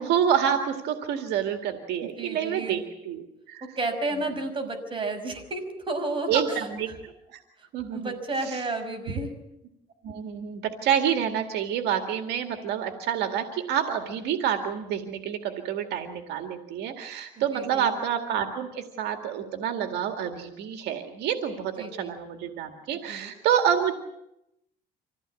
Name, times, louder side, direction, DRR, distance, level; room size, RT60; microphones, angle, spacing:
voice 1, 0.0-3.7 6.3-7.4 7.7-8.1 8.5-8.6 10.0-23.9, right 9 dB, 80° right, 5 dB, 2.1 m, -28 dB
voice 2, 2.0-2.8 3.8-6.7 7.9-9.3 17.4-17.9 21.8-22.2 23.1-23.3, right 2 dB, 30° right, 5 dB, 5.7 m, -32 dB
26.0 x 16.0 x 8.4 m, 0.84 s
cardioid pair, 110°, 17 cm